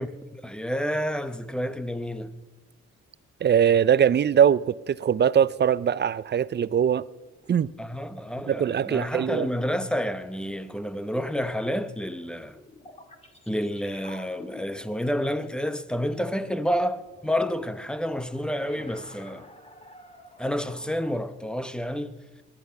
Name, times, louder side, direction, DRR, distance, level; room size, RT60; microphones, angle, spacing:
voice 1, 0.0-2.3 7.8-12.6 13.5-19.5 20.4-22.2, equal, 5° left, 0.8 m, -29 dB
voice 2, 3.4-7.0 7.5-7.7 8.5-9.5, right 8 dB, 35° right, 0.5 m, -21 dB
sound 1, 6.4-6.9 7.4-8.5 9.4-10.5 11.6-15.9 17.0-21.1, left 2 dB, 20° left, 2.0 m, -51 dB
20.5 x 11.0 x 5.7 m
cardioid pair, 90°, 30 cm